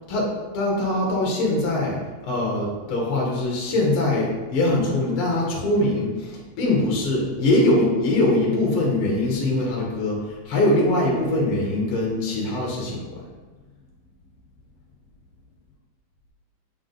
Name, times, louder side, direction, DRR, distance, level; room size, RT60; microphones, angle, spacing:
voice 1, 0.1-13.2, left 2 dB, 55° left, -3 dB, 1.7 m, -22 dB
7.5 x 3.6 x 3.9 m, 1.3 s
omnidirectional pair, 4.1 m